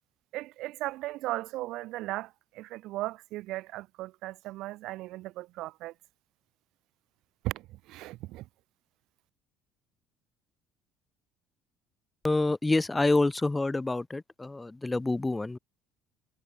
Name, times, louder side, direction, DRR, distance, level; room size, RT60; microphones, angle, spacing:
voice 1, 0.3-5.9 7.4-8.4, right 17 dB, 75° right, 1.0 m, -37 dB
voice 2, 12.2-15.6, left 2 dB, 15° left, 0.3 m, -27 dB
supercardioid pair, 95°, 0 cm